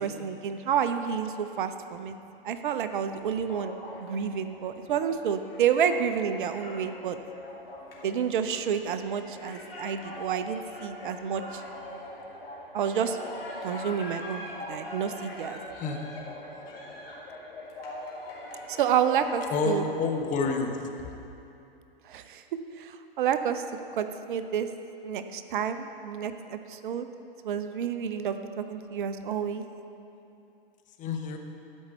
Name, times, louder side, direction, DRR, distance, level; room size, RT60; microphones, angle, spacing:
voice 1, 0.0-2.2 2.4-7.2 8.0-11.6 12.7-13.2 13.6-14.4 14.7-15.6 18.7-19.8 22.1-22.4 22.8-23.6 24.0-24.7 25.0-27.1 27.4-29.6, right 8 dB, 60° right, 9 dB, 0.6 m, -29 dB
sound 1, 3.2-19.9, left 1 dB, 80° left, 2.6 m, -42 dB
voice 2, 19.5-20.8 31.0-31.4, left 4 dB, 25° left, 3 dB, 1.0 m, -28 dB
12.5 x 5.3 x 6.7 m, 2.8 s
figure-of-eight pair, 105°, 29 cm